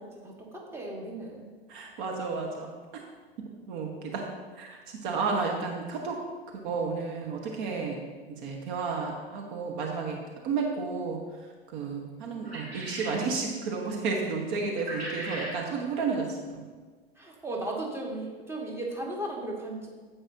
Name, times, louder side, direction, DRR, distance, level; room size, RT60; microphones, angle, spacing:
voice 1, 0.0-1.5 17.2-19.9, right 1 dB, 10° right, -1 dB, 1.8 m, -36 dB
voice 2, 1.7-2.7 3.7-4.3 4.6-6.2 6.5-8.0 8.3-10.2 10.4-11.2 11.7-16.6, right 4 dB, 50° right, 1 dB, 1.4 m, -32 dB
sound 1, 12.4-13.2 14.8-15.6, right 1 dB, 90° right, 2.7 m, -38 dB
15.5 x 5.4 x 2.9 m, 1.4 s
figure-of-eight pair, 90°, 30 cm